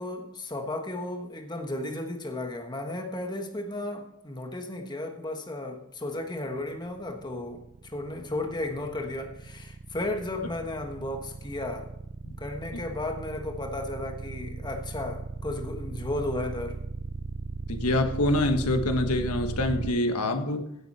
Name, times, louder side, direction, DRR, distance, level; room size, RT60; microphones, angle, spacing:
voice 1, 0.0-11.9 12.4-16.8, left 1 dB, 20° left, 4 dB, 1.3 m, -34 dB
sound 1, 6.7-19.9, right 3 dB, 30° right, 0.4 m, -37 dB
voice 2, 17.7-20.6, left 1 dB, 90° left, 6 dB, 1.4 m, -25 dB
16.0 x 8.1 x 4.3 m, 0.80 s
head